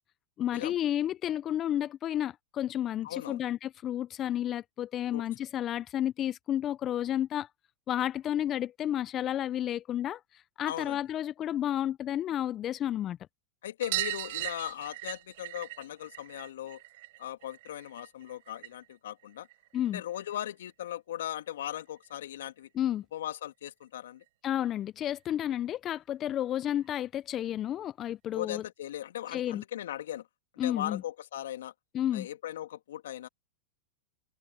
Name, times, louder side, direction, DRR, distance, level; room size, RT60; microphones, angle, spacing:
voice 1, 0.4-7.5 7.9-13.2 19.7-20.0 22.7-23.0 24.4-28.6 29.3-29.6 30.6-31.0 31.9-32.3, left 11 dB, 35° left, 0.7 m, -31 dB
voice 2, 3.0-3.4 5.1-5.2 10.7-11.0 13.6-16.8 17.2-19.5 19.9-22.7 23.1-24.2 28.3-30.3 30.6-31.7 32.1-33.3, left 12 dB, 70° left, 2.2 m, -38 dB
sound 1, 13.8-18.9 19.2-20.4 21.7-21.8 22.0-22.1 22.4-22.5 23.8-23.9 24.2-24.3 24.6-24.7 26.0-26.1 26.8-26.9, right 18 dB, 65° right, 4.0 m, -39 dB
hypercardioid pair, 100°, 0 cm